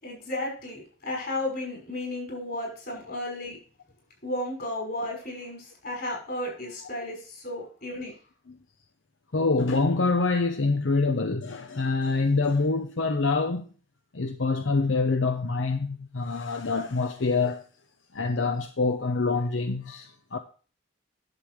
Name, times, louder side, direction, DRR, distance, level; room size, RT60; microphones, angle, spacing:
voice 1, 0.0-3.6 4.2-8.1, left 1 dB, 50° left, 5.8 m, -33 dB
voice 2, 9.3-13.6 14.1-17.6 18.1-20.4, left 3 dB, 75° left, 0.8 m, -26 dB
11.0 x 7.2 x 4.8 m
head